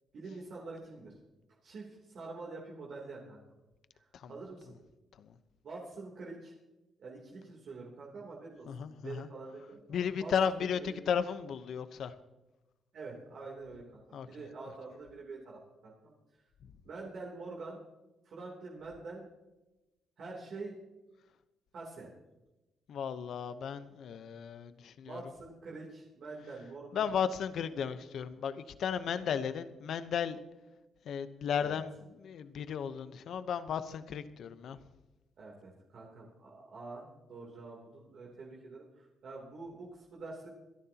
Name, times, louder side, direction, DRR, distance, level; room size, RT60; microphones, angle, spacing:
voice 1, 0.1-1.2 1.6-3.4 3.9-4.8 5.6-6.5 7.0-11.0 12.9-16.4 16.8-17.8 18.2-19.3 20.2-20.8 21.7-22.1 25.0-27.1 29.1-29.4 31.6-31.8 35.4-40.5, right 3 dB, 60° right, -2 dB, 3.2 m, -46 dB
voice 2, 8.7-9.3 9.9-12.1 14.1-14.3 22.9-25.2 26.9-30.4 31.0-34.8, left 7 dB, 65° left, 12 dB, 0.9 m, -35 dB
27.0 x 11.0 x 2.9 m, 1.0 s
cardioid pair, 90°, 0 cm